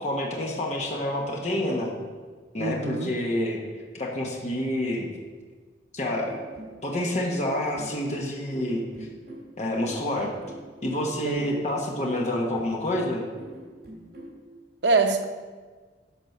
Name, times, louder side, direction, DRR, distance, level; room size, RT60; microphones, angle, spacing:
voice 1, 0.0-1.9 2.5-3.6 3.9-5.1 5.9-6.4 6.8-9.1 9.6-10.3 10.8-13.2, left 1 dB, 40° left, -1 dB, 1.3 m, -28 dB
voice 2, 2.6-3.1 11.2-11.7 14.8-15.2, right 3 dB, 80° right, 6 dB, 0.8 m, -24 dB
sound 1, 6.1-14.4, right 1 dB, 55° right, 3.0 m, -43 dB
10.5 x 5.0 x 6.7 m, 1.5 s
head